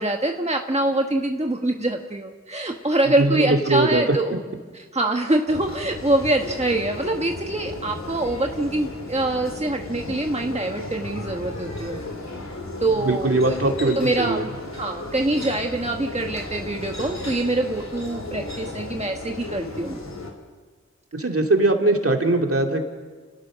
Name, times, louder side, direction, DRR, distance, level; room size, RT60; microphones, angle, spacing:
voice 1, 0.0-4.4 4.7-12.0 12.8-13.6 14.0-14.5 14.7-20.0, right 2 dB, 20° right, 3 dB, 1.4 m, -24 dB
voice 2, 3.2-4.2 13.0-14.4 21.1-22.8, right 2 dB, 50° right, 3 dB, 2.7 m, -21 dB
sound 1, 5.5-20.3, left 2 dB, 65° left, 3.5 m, -35 dB
30.0 x 17.0 x 6.4 m, 1.5 s
wide cardioid pair, 65°, 29 cm